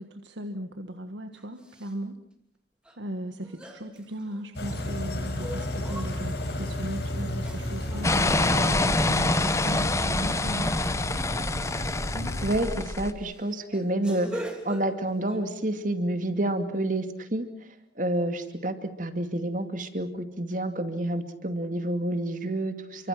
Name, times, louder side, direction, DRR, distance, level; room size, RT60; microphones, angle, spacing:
voice 1, 0.0-2.2 3.0-10.8 12.1-12.4, right 1 dB, 75° right, 6 dB, 1.5 m, -37 dB
sound 1, 1.3-1.9 2.9-3.0 3.4-4.9 5.4-6.5 7.4-8.1 8.7-9.1 10.4-10.6 11.0-11.2 11.7-12.0 12.6-12.8 13.2-15.4, right 1 dB, 5° right, 2.9 m, -43 dB
sound 2, 4.5-12.6, left 1 dB, 60° left, 4.8 m, -33 dB
sound 3, 8.0-13.1, left 2 dB, 15° left, 1.0 m, -26 dB
voice 2, 12.4-17.4 18.0-23.1, right 1 dB, 45° right, 8 dB, 2.4 m, -29 dB
29.5 x 25.0 x 6.0 m, 0.70 s
head